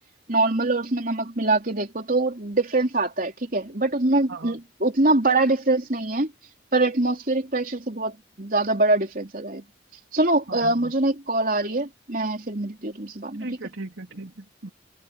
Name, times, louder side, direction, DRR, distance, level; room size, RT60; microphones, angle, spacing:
voice 1, 0.3-6.3 6.7-9.6 10.1-13.5, right 2 dB, 45° right, 3.6 m, -24 dB
voice 2, 10.5-10.9 13.4-14.7, right 2 dB, 85° right, 2.8 m, -37 dB
head